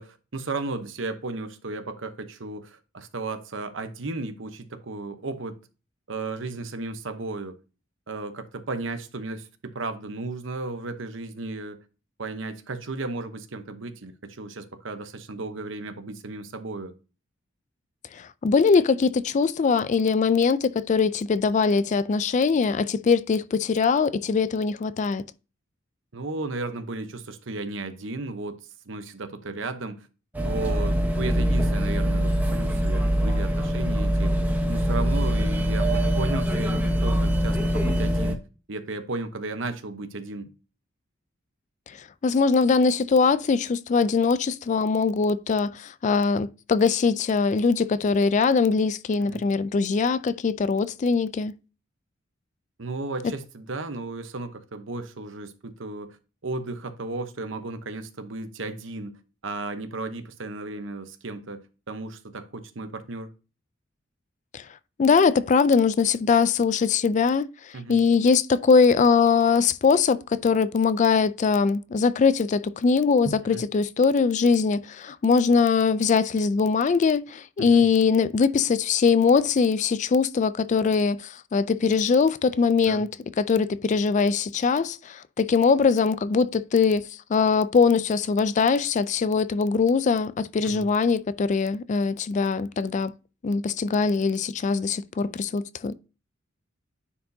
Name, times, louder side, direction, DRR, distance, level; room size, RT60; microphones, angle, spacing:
voice 1, 0.0-5.6 6.1-7.5 8.1-11.8 12.2-16.9 26.1-28.6 28.9-30.1 30.4-38.4 38.7-40.5 49.2-49.5 52.8-56.2 56.4-59.2 59.4-63.3 67.7-68.0 73.2-73.7 77.6-77.8 82.8-83.0 90.6-90.9, right 3 dB, 65° right, 0.9 m, -34 dB
voice 2, 18.1-25.2 41.9-42.0 42.2-51.5 64.5-64.6 65.0-83.1 83.4-93.1 93.4-95.9, left 5 dB, 40° left, 0.3 m, -22 dB
sound 1, 30.3-38.3, equal, 10° right, 1.0 m, -23 dB
9.8 x 4.7 x 2.7 m
head